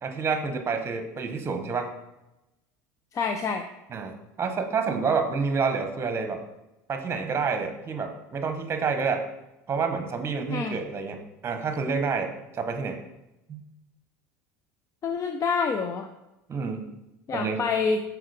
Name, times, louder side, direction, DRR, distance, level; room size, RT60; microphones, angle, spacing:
voice 1, 0.0-1.9 3.9-6.4 6.9-9.2 9.7-13.0 13.5-13.6 16.5-16.9 17.3-17.6, right 5 dB, 30° right, 6 dB, 1.2 m, -28 dB
voice 2, 3.1-3.6 10.5-10.8 15.0-16.1 17.3-18.0, left 5 dB, 35° left, 6 dB, 0.6 m, -27 dB
6.3 x 4.8 x 5.0 m, 0.94 s
supercardioid pair, 90°, 9 cm